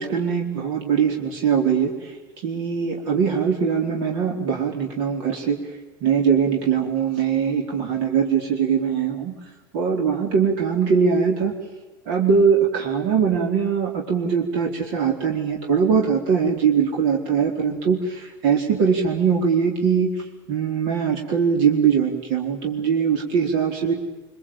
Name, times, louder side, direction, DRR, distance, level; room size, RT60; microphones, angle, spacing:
voice 1, 0.0-2.2 2.4-5.6 6.0-9.3 9.7-11.5 12.1-23.9, right 6 dB, 70° right, 1 dB, 4.4 m, -21 dB
25.5 x 25.0 x 8.9 m, 1.2 s
supercardioid pair, 145°, 10 cm